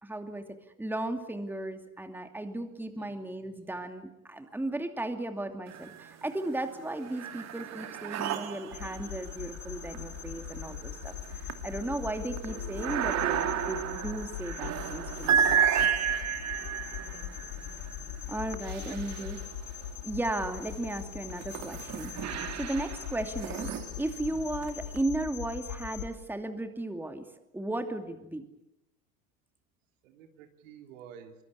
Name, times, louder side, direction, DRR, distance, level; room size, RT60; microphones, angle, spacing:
voice 1, 0.0-15.4 18.3-19.4 20.0-22.1 22.5-27.2 27.5-28.5, right 1 dB, 5° right, 6 dB, 2.6 m, -35 dB
voice 2, 2.9-3.7 17.1-17.5 18.8-19.4 30.0-31.4, right 8 dB, 65° right, 5 dB, 3.5 m, -51 dB
sound 1, 5.7-6.3 6.7-19.9 20.5-25.0, right 7 dB, 40° right, 2.5 m, -33 dB
sound 2, 8.7-26.1, left 9 dB, 60° left, 4.4 m, -41 dB
24.0 x 24.0 x 8.5 m, 0.89 s
hypercardioid pair, 85°, 42 cm